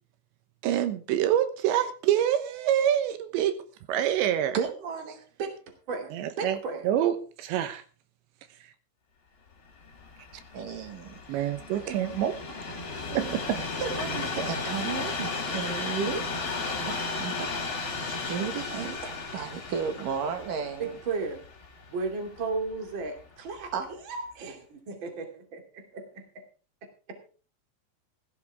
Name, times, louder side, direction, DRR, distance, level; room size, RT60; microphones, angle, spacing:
voice 1, 0.6-3.6 3.9-4.6 6.1-6.6 6.8-7.8 11.3-12.4 13.1-13.6, right 10 dB, 85° right, 10 dB, 3.3 m, -26 dB
voice 2, 4.5-5.2 10.5-12.2 12.7-13.4 13.8-17.6 18.0-21.0 23.7-23.9, right 6 dB, 60° right, 7 dB, 3.0 m, -35 dB
voice 3, 5.9-6.9 20.8-21.4 21.9-26.2 27.2-27.3, right 4 dB, 35° right, 4 dB, 2.7 m, -35 dB
Train, 9.7-22.9 23.6-23.7, left 4 dB, 35° left, 2.9 m, -35 dB
16.0 x 13.5 x 3.6 m, 0.37 s
omnidirectional pair, 5.1 m